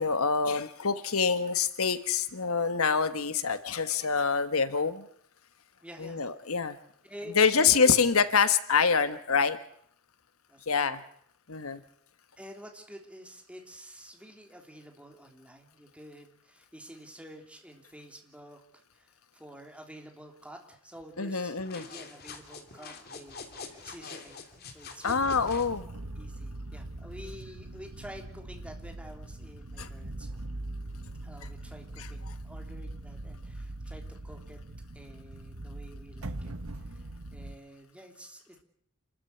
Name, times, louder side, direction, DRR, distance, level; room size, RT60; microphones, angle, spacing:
voice 1, 0.0-5.0 6.0-6.8 7.3-9.6 10.7-11.0 11.5-11.8 21.2-21.8 25.0-25.9 29.8-29.9 32.0-32.1, left 5 dB, 75° left, 11 dB, 1.3 m, -26 dB
voice 2, 5.8-6.2 7.0-8.0 10.5-10.9 12.4-24.4 24.7-25.5 26.2-30.4 31.2-34.6 34.9-36.5 36.8-38.6, equal, 5° right, 2 dB, 3.4 m, -49 dB
sound 1, 21.6-25.7, left 4 dB, 45° left, 3.0 m, -45 dB
sound 2, 25.1-37.6, right 2 dB, 70° right, 1.4 m, -41 dB
28.0 x 13.5 x 9.6 m, 0.67 s
head